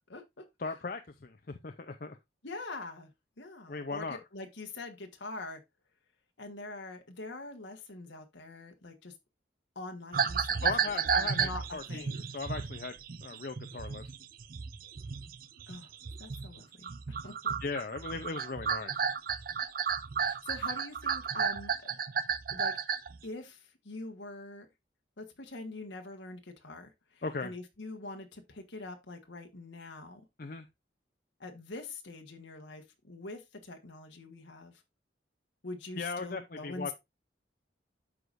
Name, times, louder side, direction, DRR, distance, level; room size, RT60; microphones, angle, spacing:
voice 1, 0.1-0.5 2.4-3.1 3.4-5.6 6.4-9.1 9.7-10.7 11.0-12.2 15.7-15.9 16.2-17.5 20.2-21.9 22.5-22.7 23.2-24.7 25.2-30.2 31.4-34.8 35.6-36.9, left 2 dB, 80° left, 1.3 m, -44 dB
voice 2, 0.6-2.2 3.7-4.2 10.6-12.0 12.3-12.9 13.2-14.0 17.6-19.0 27.2-27.5 30.4-30.7 36.0-36.9, left 4 dB, 50° left, 0.6 m, -38 dB
sound 1, 10.1-16.6 16.8-23.2, right 6 dB, 50° right, 0.5 m, -33 dB
12.5 x 4.8 x 2.5 m
head